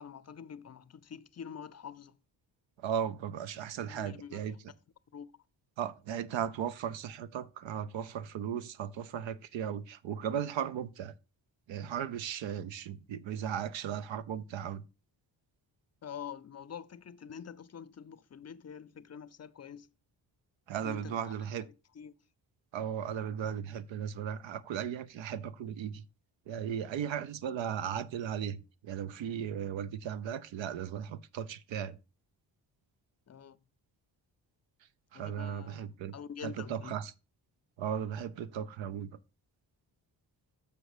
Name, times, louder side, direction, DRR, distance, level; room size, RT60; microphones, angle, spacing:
voice 1, 0.0-2.1 3.9-4.6 5.1-5.3 16.0-19.9 20.8-21.2 21.6-22.1 33.3-33.6 35.1-35.9 36.1-37.0, left 7 dB, 35° left, 0.5 m, -46 dB
voice 2, 2.8-4.5 5.8-11.1 11.7-14.8 20.7-21.6 22.7-26.0 26.5-32.0 35.1-36.1 36.4-37.1 37.8-39.2, right 8 dB, 85° right, 0.7 m, -36 dB
6.9 x 6.3 x 4.8 m
cardioid pair, 70°, 44 cm